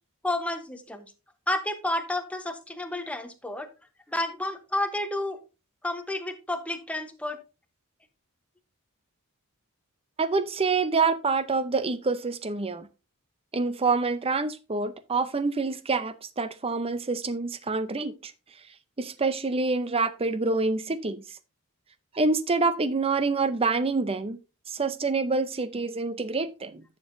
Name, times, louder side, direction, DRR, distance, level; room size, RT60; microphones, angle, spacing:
voice 1, 0.2-1.1 1.5-3.7 4.1-5.4 5.8-7.4, left 1 dB, 5° left, 0.9 m, -30 dB
voice 2, 10.2-12.9 13.5-18.3 19.0-21.2 22.1-24.4 24.7-26.8, right 4 dB, 25° right, 0.6 m, -27 dB
11.0 x 7.4 x 2.6 m
head